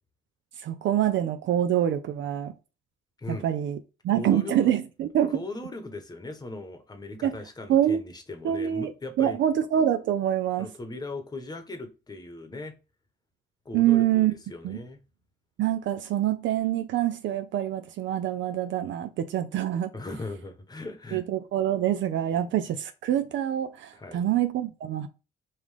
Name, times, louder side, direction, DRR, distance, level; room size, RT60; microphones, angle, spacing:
voice 1, 0.6-2.5 3.3-3.8 4.0-5.4 7.2-7.4 7.7-8.0 8.4-8.9 9.2-10.7 13.7-14.3 14.6-14.8 15.6-19.9 21.1-25.1, right 11 dB, 70° right, 0.5 m, -25 dB
voice 2, 4.1-4.7 5.3-9.4 10.6-12.7 13.6-15.0 19.9-21.2 22.4-22.5 23.9-24.2, left 2 dB, 20° left, 1.0 m, -38 dB
5.5 x 2.5 x 3.3 m
cardioid pair, 90°, 20 cm